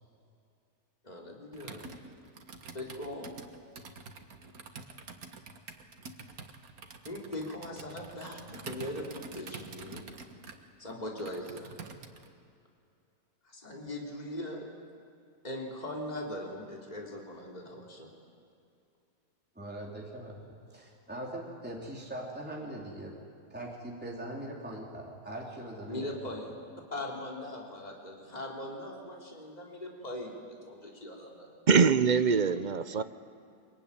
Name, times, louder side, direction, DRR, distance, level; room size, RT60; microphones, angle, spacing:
voice 1, 1.0-1.9 2.7-3.4 7.1-10.0 10.8-11.7 13.4-14.7 15.4-18.1 25.9-26.5 26.9-31.5, left 1 dB, 25° left, -1 dB, 3.7 m, -40 dB
Computer keyboard, 1.5-12.3, right 4 dB, 65° right, 2.0 m, -47 dB
voice 2, 19.6-23.2 23.5-26.1 26.7-26.8, right 1 dB, 5° right, -2 dB, 3.4 m, -41 dB
voice 3, 31.7-33.0, right 5 dB, 45° right, 12 dB, 0.6 m, -23 dB
24.5 x 23.0 x 10.0 m, 2.5 s
omnidirectional pair, 1.7 m